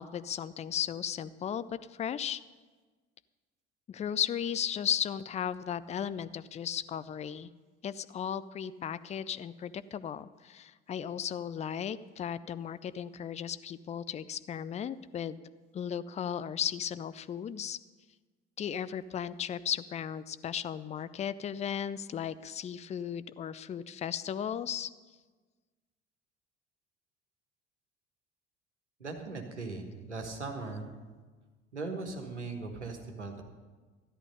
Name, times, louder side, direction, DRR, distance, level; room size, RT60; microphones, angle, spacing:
voice 1, 0.0-1.6 2.0-2.4 3.9-7.5 7.8-15.4 15.7-17.8 18.6-24.9, left 9 dB, 20° left, 16 dB, 0.4 m, -35 dB
voice 2, 29.0-30.9 31.7-33.4, right 3 dB, 90° right, 3 dB, 1.4 m, -39 dB
13.0 x 11.0 x 5.4 m, 1.3 s
figure-of-eight pair, 60°, 34 cm